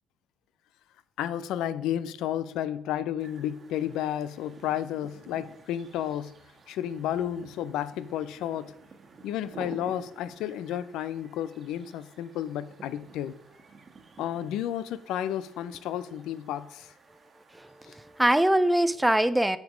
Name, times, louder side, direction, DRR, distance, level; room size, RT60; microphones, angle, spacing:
voice 1, 1.2-6.3 6.7-8.7 9.2-13.4 14.2-16.9 17.9-18.0, left 11 dB, 85° left, 0.5 m, -32 dB
sound 1, 3.2-18.3, right 4 dB, 30° right, 1.3 m, -52 dB
voice 2, 17.5-19.6, right 1 dB, 5° right, 0.4 m, -23 dB
9.3 x 5.2 x 5.0 m
cardioid pair, 135°, 0 cm